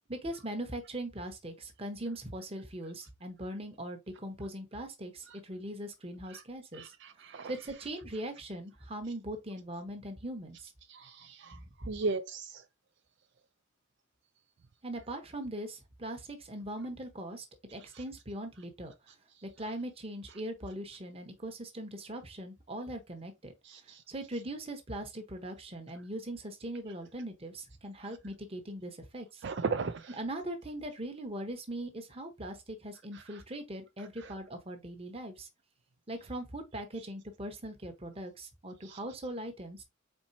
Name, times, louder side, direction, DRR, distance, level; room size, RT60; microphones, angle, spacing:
voice 1, 0.1-6.9 7.5-10.7 11.8-11.9 14.8-17.5 17.7-18.9 19.4-23.5 23.8-29.4 30.2-35.5 36.1-39.8, right 1 dB, 30° right, 1.1 m, -40 dB
voice 2, 6.7-7.5 10.9-12.6 17.9-18.0 23.6-24.0 29.4-30.2 33.1-33.4 34.2-34.3 38.8-39.0, right 4 dB, 60° right, 0.4 m, -37 dB
4.4 x 4.1 x 2.7 m
head